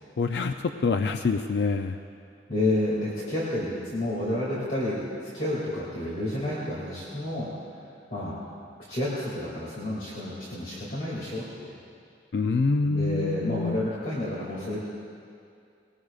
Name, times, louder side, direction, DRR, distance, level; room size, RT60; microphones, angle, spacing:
voice 1, 0.2-0.5 0.8-2.0 12.3-13.9, left 4 dB, 70° left, 6 dB, 0.4 m, -26 dB
voice 2, 2.5-7.5 8.1-8.4 8.9-11.8 12.8-14.9, left 1 dB, 50° left, -7 dB, 2.4 m, -30 dB
21.0 x 18.5 x 2.4 m, 2.4 s
head